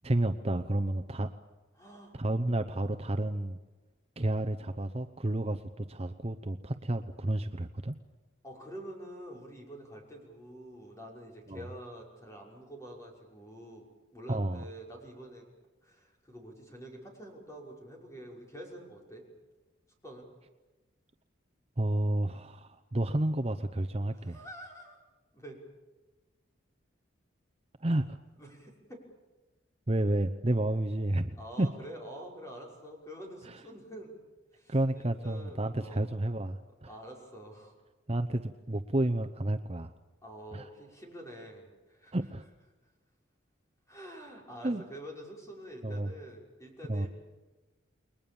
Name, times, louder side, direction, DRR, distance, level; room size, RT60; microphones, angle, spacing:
voice 1, 0.0-1.3 2.2-3.6 4.2-8.0 11.5-11.6 14.3-14.6 21.8-24.4 27.8-28.2 29.9-31.7 33.4-33.6 34.7-36.9 38.1-39.9 40.5-40.7 42.1-42.4 44.6-44.8 45.8-46.1 46.9-47.1, right 1 dB, 30° right, 6 dB, 0.8 m, -31 dB
voice 2, 1.8-2.2 8.4-13.9 14.1-15.5 15.8-19.2 20.0-20.3 24.1-25.0 25.3-25.6 28.4-29.0 31.4-34.2 34.5-36.1 36.9-37.7 40.2-42.2 43.9-47.1, right 1 dB, 15° left, -1 dB, 5.9 m, -47 dB
29.5 x 21.5 x 7.2 m, 1.2 s
head